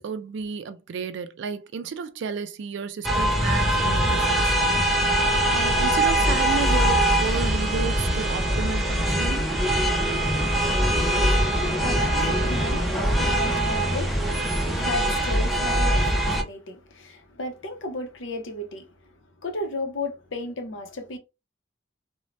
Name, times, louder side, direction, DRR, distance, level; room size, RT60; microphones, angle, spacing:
voice 1, 0.0-4.8 5.5-9.5, right 5 dB, 65° right, 0.3 m, -32 dB
sound 1, 3.0-16.4, right 1 dB, ahead, 0.4 m, -22 dB
voice 2, 11.3-19.1 19.4-21.2, left 2 dB, 75° left, 0.7 m, -34 dB
2.6 x 2.1 x 3.1 m
head